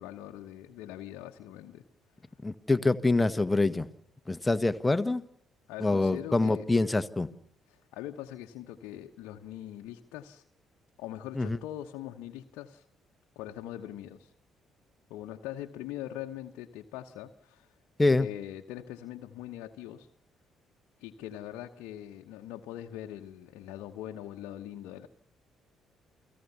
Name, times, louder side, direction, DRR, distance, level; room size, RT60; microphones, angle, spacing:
voice 1, 0.0-1.8 5.7-6.7 7.7-10.4 11.0-12.8 13.3-14.3 15.1-17.7 18.2-20.1 21.0-25.1, left 12 dB, 70° left, 3 dB, 1.1 m, -42 dB
voice 2, 2.4-3.9 4.3-5.2 5.8-7.3 11.3-11.6 18.0-18.3, left 2 dB, 15° left, 11 dB, 1.4 m, -25 dB
29.0 x 19.0 x 7.1 m, 0.65 s
hypercardioid pair, 50°, 0 cm